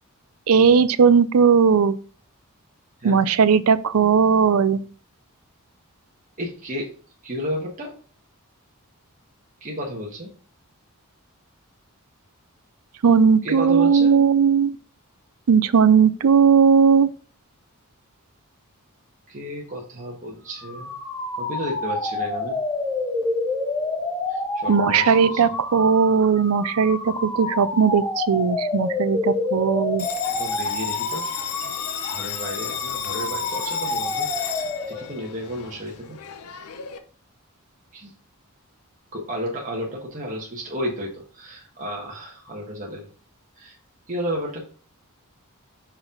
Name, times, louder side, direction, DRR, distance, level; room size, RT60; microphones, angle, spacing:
voice 1, 0.5-1.9 3.0-4.8 13.0-14.7 15.5-17.1 24.7-30.1, right 6 dB, 75° right, 0.5 m, -17 dB
voice 2, 6.4-6.9 7.2-7.9 9.6-10.3 13.4-14.1 19.3-20.9 21.4-22.6 24.3-25.5 30.3-31.3 32.1-36.2 37.9-38.1 39.1-43.1 43.6-43.8 44.1-44.7, equal, 35° right, 1.3 m, -32 dB
sound 1, 20.5-35.2, left 2 dB, 15° left, 1.1 m, -28 dB
Bell, 30.0-37.0, left 8 dB, 90° left, 0.7 m, -33 dB
5.6 x 5.0 x 3.7 m
head